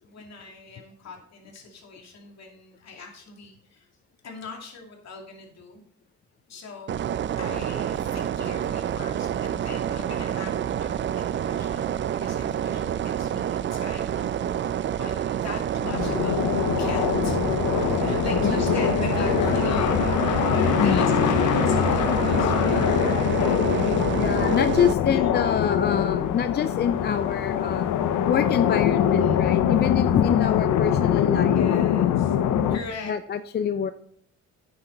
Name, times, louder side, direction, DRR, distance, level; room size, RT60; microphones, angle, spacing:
voice 1, 0.0-3.9 4.2-5.8 6.5-7.0 7.4-17.4 17.8-24.0 25.1-25.4 29.0-29.6 31.5-32.4 32.7-33.1, left 4 dB, 60° left, 1 dB, 2.5 m, -41 dB
sound 1, 6.9-24.9, right 10 dB, 40° right, 0.4 m, -28 dB
sound 2, 15.8-32.8, left 9 dB, 80° left, 0.7 m, -23 dB
voice 2, 24.2-27.9 28.3-31.7 33.1-33.9, left 8 dB, 35° left, 12 dB, 0.4 m, -25 dB
8.9 x 7.0 x 3.9 m, 0.65 s
cardioid pair, 90°, 30 cm